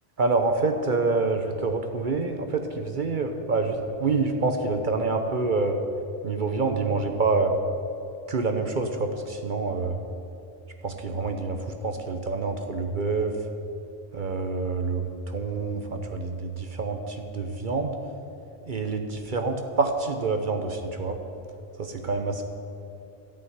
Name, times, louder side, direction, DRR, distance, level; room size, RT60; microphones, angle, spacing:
voice 1, 0.2-5.8 6.2-7.5 8.3-10.0 10.8-13.4 14.1-18.0 18.7-21.2 21.8-22.4, right 3 dB, 55° right, 5 dB, 0.9 m, -27 dB
13.5 x 5.7 x 9.4 m, 2.6 s
omnidirectional pair, 1.0 m